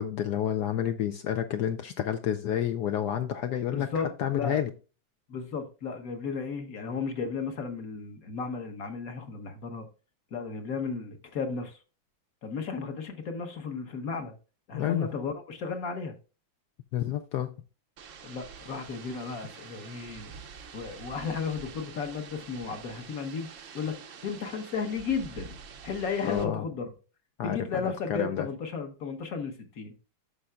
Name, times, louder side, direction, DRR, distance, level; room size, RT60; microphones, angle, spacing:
voice 1, 0.0-3.9 4.2-4.7 14.7-15.1 16.9-17.5 26.2-26.6 27.4-28.5, left 10 dB, 75° left, 1.0 m, -29 dB
voice 2, 3.7-4.6 5.3-9.9 10.3-11.8 12.4-14.3 14.7-16.2 18.2-20.3 20.7-23.5 23.7-25.6 25.8-26.9 27.4-29.9, left 5 dB, 50° left, 1.4 m, -34 dB
sound 1, 18.0-26.5, right 6 dB, 65° right, 0.8 m, -47 dB
11.5 x 6.5 x 2.4 m
omnidirectional pair, 2.1 m